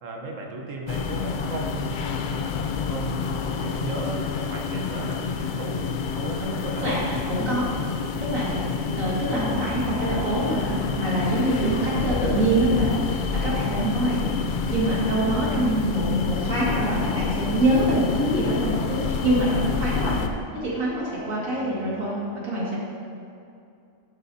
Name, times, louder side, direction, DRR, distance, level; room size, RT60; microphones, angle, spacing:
voice 1, 0.0-2.1 2.8-7.1 17.8-17.9 21.2-22.1, right 2 dB, 70° right, 1 dB, 1.4 m, -36 dB
sound 1, 0.9-20.3, left 6 dB, 60° left, 0.5 m, -28 dB
voice 2, 6.7-7.7 8.2-8.7 9.0-22.8, right 1 dB, 90° right, -7 dB, 2.6 m, -25 dB
10.5 x 9.2 x 2.8 m, 2.5 s
omnidirectional pair, 1.4 m